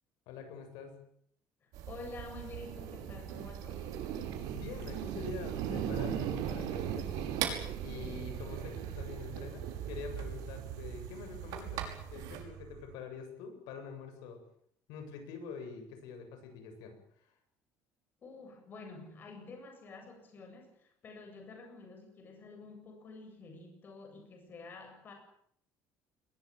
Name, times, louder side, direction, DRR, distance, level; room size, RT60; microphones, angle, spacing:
voice 1, 0.3-1.0 4.5-7.3 7.8-14.4 14.9-17.3, left 5 dB, 85° left, 6 dB, 7.9 m, -46 dB
sound 1, 1.7-12.4, right 9 dB, 70° right, 5.9 m, -42 dB
voice 2, 1.8-4.0 18.2-25.1, left 3 dB, 30° left, 4 dB, 7.8 m, -49 dB
sound 2, 2.5-12.9, right 9 dB, 90° right, 4.3 m, -40 dB
21.5 x 20.5 x 9.3 m, 0.67 s
cardioid pair, 165°, 6 cm